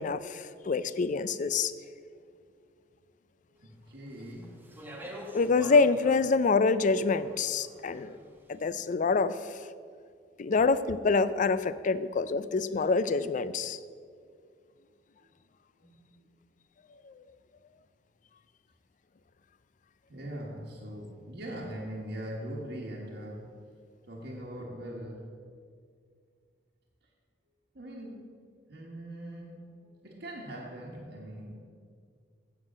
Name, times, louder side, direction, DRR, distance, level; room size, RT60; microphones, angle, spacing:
voice 1, 0.0-1.7 5.3-8.1 8.5-9.4 10.4-13.8 17.1-17.2, left 4 dB, 45° left, 15 dB, 0.4 m, -26 dB
voice 2, 3.5-4.6 12.3-12.4 15.8-16.3 20.1-23.6 24.1-25.4 27.7-28.4 28.7-31.6, right 1 dB, 65° right, -4 dB, 1.4 m, -41 dB
Speech, 4.1-8.4, equal, 10° right, 1.0 m, -46 dB
7.9 x 7.6 x 7.3 m, 2.2 s
head